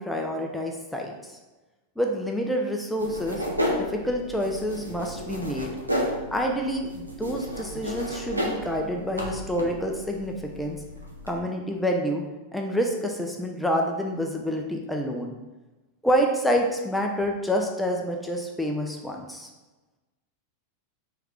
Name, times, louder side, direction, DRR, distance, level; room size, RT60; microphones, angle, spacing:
voice 1, 0.0-1.3 2.0-3.4 3.9-5.7 6.3-10.8 11.2-12.2 12.5-15.4 16.0-19.5, equal, 5° left, 1 dB, 0.5 m, -28 dB
sound 1, 3.0-11.4, equal, 85° right, 0.6 m, -32 dB
3.5 x 3.3 x 3.4 m, 1.1 s
figure-of-eight pair, 90°, 0 cm